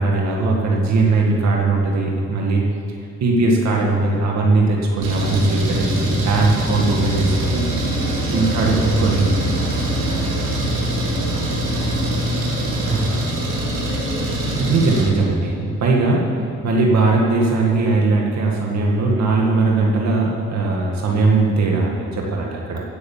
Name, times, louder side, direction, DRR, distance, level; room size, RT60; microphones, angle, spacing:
voice 1, 0.0-2.6 3.2-7.6 8.3-8.7 9.0-9.2 12.8-13.1 14.6-16.2 16.6-22.8, right 3 dB, 65° right, -2 dB, 2.0 m, -19 dB
Engine, 5.0-15.0, right 1 dB, 80° right, 3.5 m, -23 dB
voice 2, 6.2-6.6 7.4-10.2 10.7-14.7 16.2-16.5, equal, 40° left, -5 dB, 4.0 m, -33 dB
16.0 x 6.4 x 7.4 m, 2.4 s
cardioid pair, 90°, 30 cm